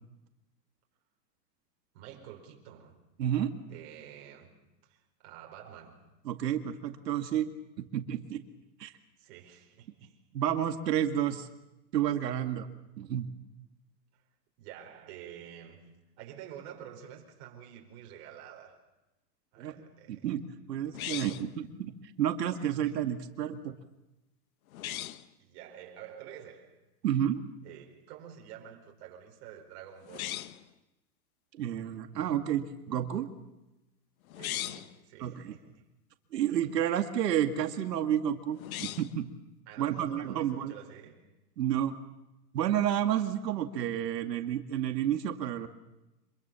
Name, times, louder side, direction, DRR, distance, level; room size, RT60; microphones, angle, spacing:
voice 1, 1.9-3.0 3.7-6.1 9.2-10.2 14.1-14.2 14.6-18.9 19.5-20.3 21.1-21.3 22.6-23.0 25.4-26.8 27.6-30.4 34.3-35.8 36.4-36.6 39.7-41.3, right 9 dB, 40° right, 4.7 m, -49 dB
voice 2, 3.2-3.5 6.3-7.5 7.8-8.4 8.8-8.9 10.3-11.5 11.9-12.7 13.0-13.3 19.6-19.7 20.1-21.9 22.2-23.8 27.0-27.4 31.6-33.3 35.2-35.6 36.3-39.3 39.8-40.7 41.6-42.0 42.5-45.7, right 10 dB, 80° right, 2.2 m, -30 dB
sound 1, 20.9-21.6 24.7-25.3 30.0-30.7 34.3-34.9 38.5-39.2, left 13 dB, 55° left, 1.2 m, -38 dB
26.0 x 23.5 x 7.0 m
supercardioid pair, 165°, 49 cm